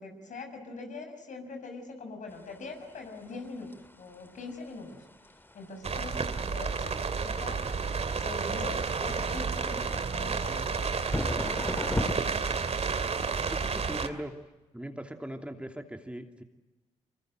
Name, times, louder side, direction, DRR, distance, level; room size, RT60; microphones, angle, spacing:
voice 1, 0.0-5.0 5.5-7.7 8.2-11.9, left 3 dB, 60° left, 5 dB, 6.3 m, -43 dB
sound 1, 2.3-12.1, left 1 dB, 15° left, 2.0 m, -38 dB
sound 2, 5.8-14.1, right 5 dB, 50° right, 2.6 m, -31 dB
voice 2, 13.5-14.3 14.7-16.4, right 1 dB, 10° right, 5 dB, 2.8 m, -40 dB
25.0 x 24.0 x 7.7 m, 1.1 s
hypercardioid pair, 45°, 14 cm